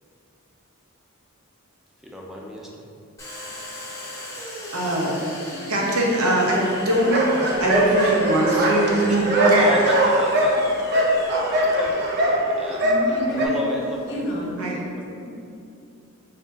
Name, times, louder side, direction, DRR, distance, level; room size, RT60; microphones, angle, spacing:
voice 1, 2.0-2.9 9.6-12.8 13.3-14.3 14.6-15.1, equal, ahead, -2 dB, 0.4 m, -34 dB
Domestic sounds home sounds, 3.2-14.6, left 1 dB, 15° left, 1.1 m, -37 dB
voice 2, 4.7-5.2 5.7-7.2 7.6-9.7 14.6-14.7, right 1 dB, 75° right, -2 dB, 0.8 m, -21 dB
sound 1, 6.9-13.5, right 1 dB, 50° right, 0.5 m, -21 dB
voice 3, 12.8-13.6 14.1-14.8 15.2-15.3, equal, 55° left, -1 dB, 0.6 m, -29 dB
4.0 x 2.6 x 3.8 m, 2.6 s
head